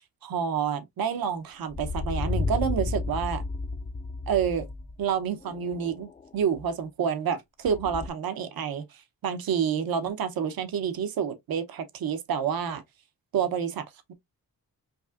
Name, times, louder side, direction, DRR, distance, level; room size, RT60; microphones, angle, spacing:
voice 1, 0.2-3.4 4.3-4.7 5.0-6.1 6.3-8.8 9.2-12.8 13.3-14.1, right 7 dB, 80° right, 0.9 m, -28 dB
sound 1, 1.7-5.0 5.4-6.3 6.6-6.7 7.7-8.1, left 3 dB, 20° left, 0.4 m, -32 dB
5.2 x 2.5 x 2.4 m
wide cardioid pair, 130°, 35 cm